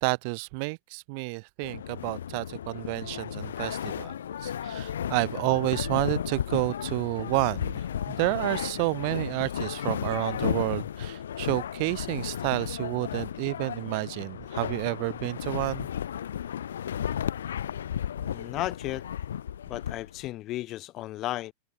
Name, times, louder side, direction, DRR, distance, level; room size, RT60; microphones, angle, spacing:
voice 1, 0.0-4.1 4.4-15.9, right 34 dB, 55° right, 1.9 m, -30 dB
sound 1, 1.6-20.3, left 9 dB, 90° left, 2.0 m, -34 dB
voice 2, 18.2-19.1 19.7-21.5, left 16 dB, 40° left, 3.3 m, -34 dB
hypercardioid pair, 125°, 0 cm